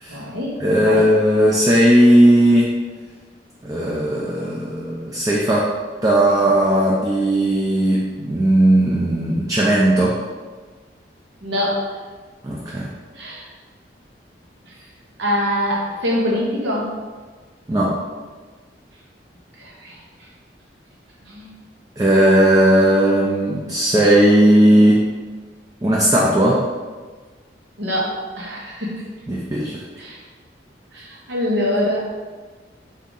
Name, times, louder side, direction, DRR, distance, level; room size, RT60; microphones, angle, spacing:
voice 1, 0.1-1.0 11.4-11.8 12.7-12.8 13.2-13.4 15.2-16.9 19.6-20.0 21.2-21.5 27.8-28.9 30.0-30.2 30.9-32.1, equal, 85° right, -4 dB, 1.0 m, -24 dB
voice 2, 0.6-2.7 3.6-5.7 6.0-10.1 12.4-12.9 17.7-17.9 22.0-25.0 25.8-26.6 29.3-29.8, right 1 dB, 20° right, -5 dB, 0.4 m, -16 dB
3.5 x 2.7 x 3.8 m, 1.4 s
head